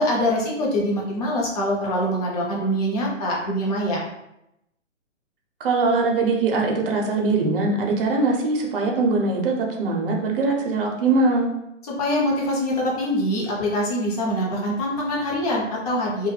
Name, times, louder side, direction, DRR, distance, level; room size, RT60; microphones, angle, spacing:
voice 1, 0.0-4.0 11.8-16.3, equal, 30° left, -3 dB, 0.7 m, -24 dB
voice 2, 5.6-11.5, right 3 dB, 50° right, 1 dB, 0.7 m, -22 dB
2.2 x 2.1 x 3.2 m, 0.85 s
figure-of-eight pair, 130°, 37 cm